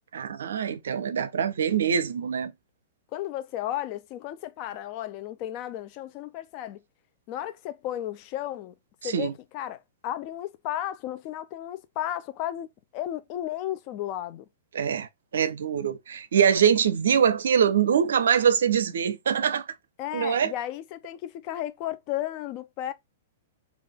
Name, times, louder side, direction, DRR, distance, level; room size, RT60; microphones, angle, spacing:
voice 1, 0.1-2.5 9.0-9.3 14.7-15.1 15.3-19.7 20.1-20.5, right 8 dB, 70° right, 0.5 m, -23 dB
voice 2, 3.1-6.8 7.3-8.7 9.0-12.7 12.9-14.5 20.0-22.9, left 12 dB, 40° left, 0.5 m, -34 dB
3.3 x 2.4 x 3.4 m
hypercardioid pair, 110°, 0 cm